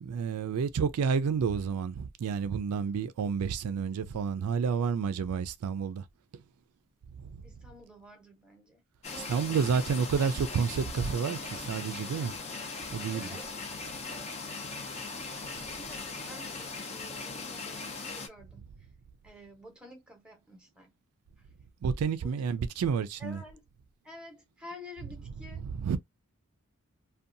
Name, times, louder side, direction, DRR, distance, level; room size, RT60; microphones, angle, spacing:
voice 1, 0.0-6.0 7.2-7.4 9.3-12.3 12.9-13.3 21.8-23.4 25.8-26.0, right 6 dB, 80° right, 0.3 m, -30 dB
voice 2, 7.4-9.5 13.1-13.5 14.3-18.9 19.2-20.9 21.4-21.5 22.2-22.4 23.2-23.7 24.0-25.6, left 1 dB, 5° right, 0.8 m, -50 dB
sound 1, 9.0-18.3, left 4 dB, 30° left, 0.5 m, -39 dB
2.6 x 2.2 x 2.5 m
head